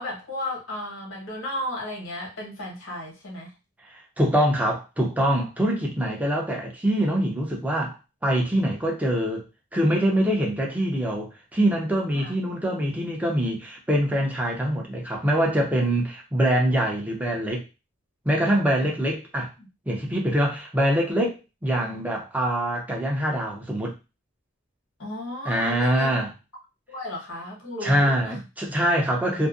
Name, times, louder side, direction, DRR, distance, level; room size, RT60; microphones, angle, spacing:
voice 1, 0.0-3.5 12.1-12.3 18.8-18.9 19.6-19.7 25.0-26.1 26.9-28.4, left 1 dB, 75° left, -2 dB, 1.2 m, -34 dB
voice 2, 3.9-9.5 9.7-17.6 18.2-19.5 19.9-23.9 25.4-26.3 27.8-29.5, right 1 dB, 10° right, -1 dB, 0.6 m, -24 dB
2.6 x 2.1 x 2.4 m, 0.28 s
head